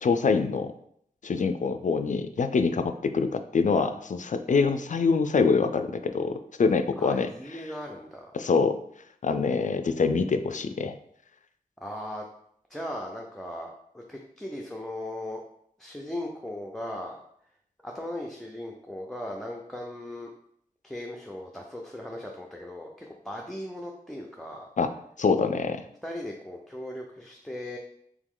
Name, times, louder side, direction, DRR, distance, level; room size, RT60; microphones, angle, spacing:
voice 1, 0.0-0.7 1.2-7.3 8.3-8.8 9.2-11.0 24.8-24.9 25.2-25.8, left 4 dB, 55° left, 9 dB, 0.4 m, -25 dB
voice 2, 7.0-8.3 11.8-12.2 12.7-15.4 15.8-17.2 17.8-20.3 20.8-24.7 26.0-27.8, left 1 dB, ahead, 0 dB, 0.5 m, -38 dB
3.6 x 3.0 x 3.7 m, 0.69 s
wide cardioid pair, 50°, 15 cm